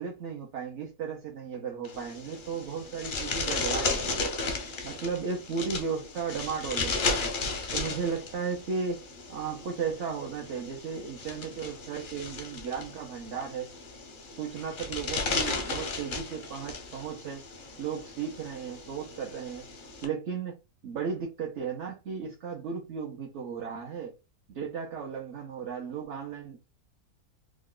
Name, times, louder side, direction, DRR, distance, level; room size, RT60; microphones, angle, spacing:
voice 1, 0.0-4.3 4.8-7.3 7.7-9.0 9.3-13.7 14.3-17.4 17.8-19.7 20.0-24.1 24.5-26.6, right 6 dB, 55° right, 1.0 m, -35 dB
sound 1, 1.8-20.0, left 3 dB, 50° left, 0.6 m, -35 dB
3.1 x 2.3 x 3.7 m
omnidirectional pair, 1.6 m